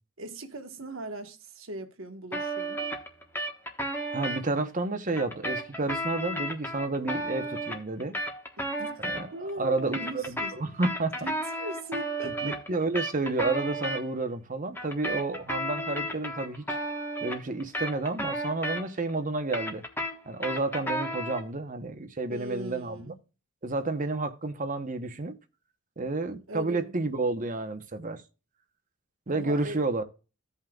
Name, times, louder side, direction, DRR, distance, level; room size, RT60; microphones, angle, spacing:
voice 1, 0.2-2.9 8.6-9.1 9.3-10.6 11.2-12.6 22.3-23.2 26.5-26.9 29.3-29.8, right 1 dB, 65° right, 1.4 m, -40 dB
sound 1, 2.3-4.4 5.1-9.5 9.8-14.0 14.7-19.1 19.4-21.5, right 1 dB, 10° left, 1.3 m, -33 dB
voice 2, 4.1-8.1 9.0-9.3 9.6-11.2 12.2-16.6 17.2-19.8 20.3-23.1 23.6-25.4 26.0-28.2 29.3-30.0, right 2 dB, 40° right, 0.9 m, -30 dB
15.5 x 5.6 x 2.4 m
head